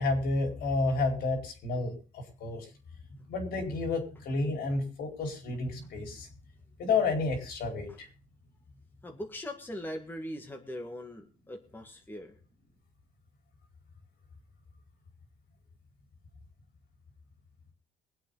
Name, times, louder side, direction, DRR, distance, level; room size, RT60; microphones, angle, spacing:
voice 1, 0.0-2.6 3.3-6.3 6.8-8.1, left 3 dB, 70° left, 2 dB, 4.8 m, -30 dB
voice 2, 9.0-12.3, left 1 dB, 10° left, 3 dB, 1.9 m, -41 dB
23.0 x 8.1 x 4.0 m, 0.37 s
cardioid pair, 110°, 17 cm